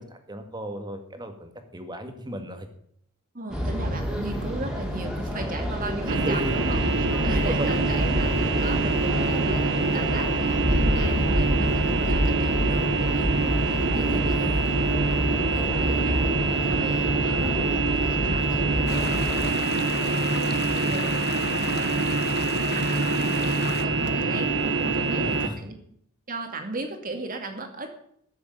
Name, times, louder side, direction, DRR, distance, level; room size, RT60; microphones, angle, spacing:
voice 1, 0.0-2.7 6.1-6.5 7.3-7.8 14.1-14.6 25.1-25.6, right 1 dB, 20° right, 6 dB, 1.8 m, -34 dB
voice 2, 3.3-6.8 7.2-14.5 15.1-16.2 16.6-22.4 22.7-25.7 26.3-28.0, right 2 dB, 40° right, 5 dB, 2.3 m, -36 dB
sound 1, 3.5-19.5, equal, 5° right, 3.0 m, -28 dB
sound 2, 6.1-25.5, right 3 dB, 60° right, 1.2 m, -25 dB
sound 3, 18.9-23.8, left 7 dB, 50° left, 0.8 m, -35 dB
13.5 x 6.9 x 8.9 m, 0.67 s
head